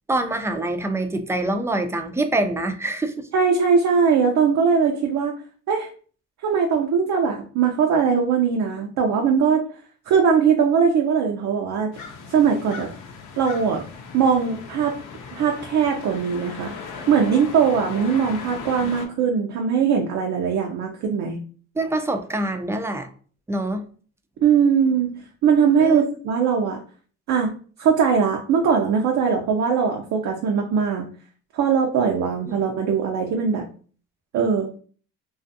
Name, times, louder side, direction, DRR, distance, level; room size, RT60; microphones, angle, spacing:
voice 1, 0.1-3.3 21.8-23.1 23.5-23.9 25.8-26.0 32.5-32.6, right 2 dB, 10° right, 7 dB, 0.3 m, -25 dB
voice 2, 3.3-5.3 5.7-5.9 6.4-9.6 10.1-11.9 12.3-12.9 13.4-13.8 14.1-14.9 15.3-16.7 17.1-21.4 24.4-25.1 25.4-26.8 27.3-27.5 27.8-31.1 31.5-33.6 34.3-34.8, right 6 dB, 65° right, 1 dB, 0.5 m, -20 dB
sound 1, 11.9-19.1, left 5 dB, 85° left, 0.6 m, -37 dB
2.4 x 2.4 x 2.6 m, 0.42 s
cardioid pair, 90°, 30 cm